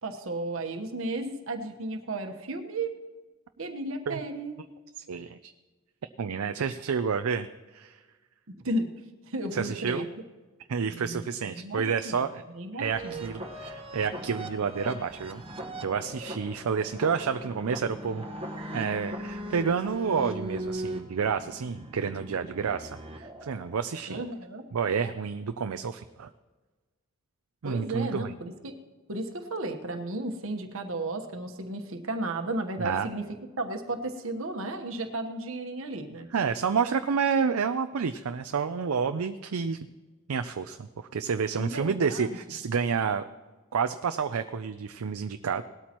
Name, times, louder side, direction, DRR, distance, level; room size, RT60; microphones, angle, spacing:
voice 1, 0.0-2.9 3.6-4.6 8.6-8.9 9.3-10.2 10.9-13.3 24.1-24.6 27.6-28.7 29.1-33.2 33.6-36.3 41.6-42.4, right 2 dB, 65° right, 5 dB, 1.2 m, -34 dB
voice 2, 5.1-5.4 6.2-7.5 7.7-8.0 9.5-10.0 10.7-12.4 12.7-15.4 15.8-18.2 18.7-24.2 24.7-26.3 27.6-28.3 32.8-33.1 36.3-39.9 40.3-43.2 43.7-45.6, right 6 dB, 80° right, 9 dB, 0.5 m, -29 dB
sound 1, 12.8-23.8, right 1 dB, 25° right, 1.2 m, -39 dB
18.5 x 12.5 x 3.0 m, 1.3 s
head